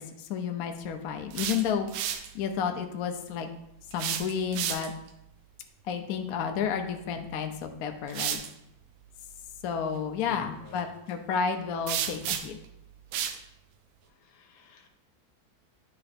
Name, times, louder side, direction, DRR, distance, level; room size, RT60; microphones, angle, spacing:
voice 1, 0.0-3.5 3.9-4.9 5.8-8.4 9.6-12.6, left 7 dB, 65° left, 5 dB, 0.9 m, -31 dB
sound 1, 1.1-2.3 3.9-5.1 7.2-7.3 8.1-8.5 11.9-12.7 13.1-13.4, right 9 dB, 85° right, 1.4 m, -32 dB
voice 2, 10.3-10.8 14.3-14.9, left 4 dB, 85° left, 4 dB, 1.7 m, -48 dB
9.7 x 3.3 x 4.1 m, 0.80 s
omnidirectional pair, 2.1 m